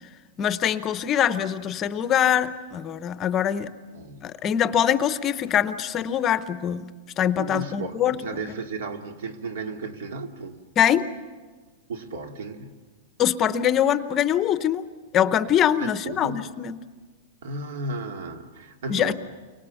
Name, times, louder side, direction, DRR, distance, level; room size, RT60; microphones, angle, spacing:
voice 1, 0.4-3.7 4.2-6.9 7.2-8.2 10.8-11.1 13.2-14.9 15.1-16.8 18.9-19.1, left 9 dB, 20° left, 12 dB, 0.7 m, -23 dB
voice 2, 3.9-4.3 7.4-10.6 11.9-12.8 15.8-16.5 17.4-19.1, right 3 dB, 75° right, 5 dB, 2.4 m, -34 dB
29.5 x 23.5 x 7.1 m, 1.4 s
supercardioid pair, 170°, 0 cm